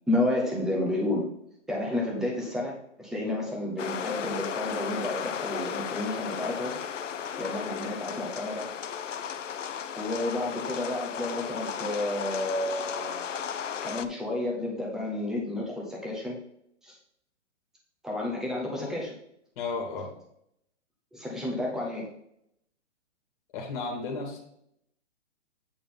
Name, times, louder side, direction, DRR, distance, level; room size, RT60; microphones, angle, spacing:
voice 1, 0.1-1.3 1.7-6.8 7.4-8.7 10.0-13.2 13.8-16.4 16.8-17.0 18.0-19.2 21.1-22.1, left 1 dB, ahead, -2 dB, 0.8 m, -31 dB
sound 1, 3.8-14.0, left 8 dB, 80° left, 0.8 m, -35 dB
voice 2, 19.6-20.1 23.5-24.4, left 4 dB, 30° left, 1 dB, 2.0 m, -33 dB
8.6 x 4.0 x 5.5 m, 0.74 s
hypercardioid pair, 160°, 37 cm